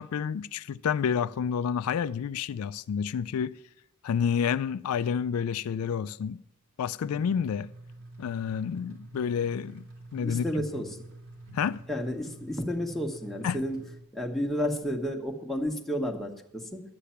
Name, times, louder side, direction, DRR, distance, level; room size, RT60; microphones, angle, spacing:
voice 1, 0.0-3.6 4.0-6.4 6.8-7.7 8.2-9.8 10.1-10.4 11.5-11.8 13.4-13.6, left 7 dB, 75° left, 0.3 m, -29 dB
sound 1, 7.0-14.0, right 1 dB, 70° right, 2.9 m, -47 dB
voice 2, 10.2-11.0 11.9-13.8 14.1-16.8, equal, ahead, 1.3 m, -31 dB
11.5 x 8.4 x 5.7 m
head